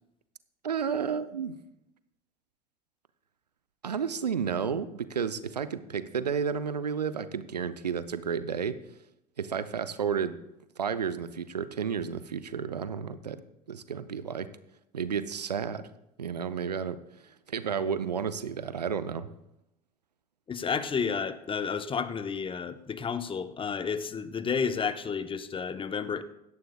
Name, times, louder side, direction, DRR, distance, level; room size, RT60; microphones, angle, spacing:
voice 1, 0.6-1.5 3.8-8.8 9.4-10.4 10.8-13.4 13.7-14.5 14.9-15.9 16.2-17.0 17.2-19.3, right 7 dB, 85° right, 14 dB, 0.6 m, -32 dB
voice 2, 20.5-26.2, left 6 dB, 25° left, 11 dB, 0.9 m, -31 dB
17.0 x 13.0 x 2.3 m, 0.85 s
figure-of-eight pair, 65°, 20 cm